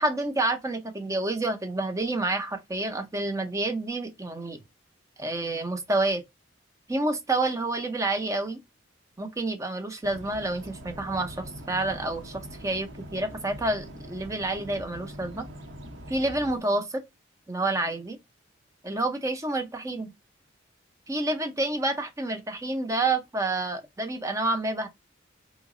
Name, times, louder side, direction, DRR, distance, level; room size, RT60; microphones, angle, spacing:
voice 1, 0.0-4.6 5.2-6.2 6.9-8.6 9.2-15.4 16.1-17.0 17.5-18.2 18.8-20.1 21.1-24.9, right 2 dB, 15° right, 0.5 m, -28 dB
sound 1, 10.0-16.6, equal, 60° right, 0.7 m, -43 dB
3.2 x 2.0 x 3.6 m
head